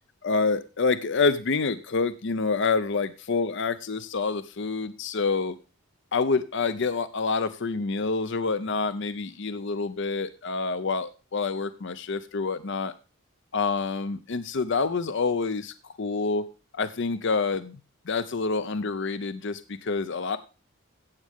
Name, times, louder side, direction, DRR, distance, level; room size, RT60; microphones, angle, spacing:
voice 1, 0.2-5.6 6.1-12.9 13.5-16.4 16.7-17.8 18.1-20.4, left 4 dB, 55° left, 13 dB, 0.6 m, -27 dB
15.5 x 8.5 x 3.6 m, 0.34 s
head